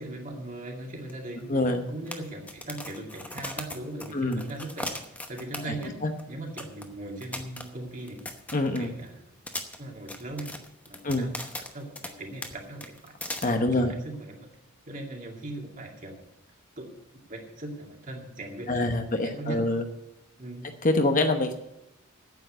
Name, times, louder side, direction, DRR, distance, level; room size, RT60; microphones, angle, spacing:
voice 1, 0.0-6.0 6.3-8.2 8.8-9.2 9.8-10.5 10.9-11.5 11.7-13.1 13.5-14.4 14.9-16.2 16.8-16.9 17.3-19.0 19.2-19.6 20.4-20.7, right 2 dB, 35° right, 0 dB, 2.3 m, -39 dB
sound 1, 1.1-1.2 1.4-1.5 2.1-5.9 6.2-6.3 6.6-6.8 7.2-9.0 9.5-12.1 12.4-12.5 12.8-13.4, left 1 dB, 5° left, 0.9 m, -38 dB
voice 2, 1.5-1.8 4.1-4.4 6.0-6.1 8.5-8.9 11.0-11.3 13.4-13.9 18.7-19.8 20.8-21.5, left 2 dB, 35° left, 6 dB, 1.0 m, -25 dB
9.4 x 8.6 x 8.0 m, 0.85 s
head